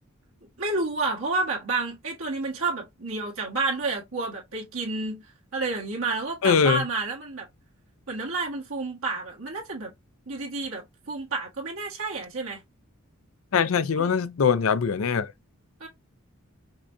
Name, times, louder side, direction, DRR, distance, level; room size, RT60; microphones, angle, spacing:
voice 1, 0.6-5.3 5.5-7.5 8.1-9.9 10.3-12.6 13.9-14.1 15.8-15.9, right 3 dB, 75° right, 1.5 m, -30 dB
voice 2, 6.4-6.8 13.5-15.3, left 6 dB, 70° left, 0.5 m, -22 dB
5.4 x 2.2 x 2.6 m
head